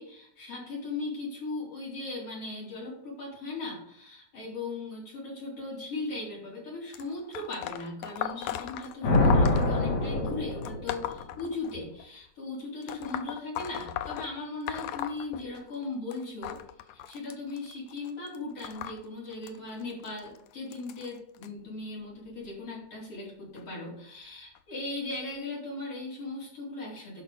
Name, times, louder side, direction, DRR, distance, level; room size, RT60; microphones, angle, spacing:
voice 1, 0.0-16.6 16.9-27.2, left 3 dB, 45° left, -5 dB, 5.2 m, -38 dB
sound 1, 6.9-12.1 12.8-15.8 16.1-21.5 22.3-22.5 23.6-23.7 24.6-24.7 25.4-25.5, left 12 dB, 80° left, 1.7 m, -38 dB
Thunder, 9.0-11.2, left 2 dB, 60° left, 3.2 m, -24 dB
10.5 x 5.9 x 5.3 m, 0.69 s
omnidirectional pair, 3.7 m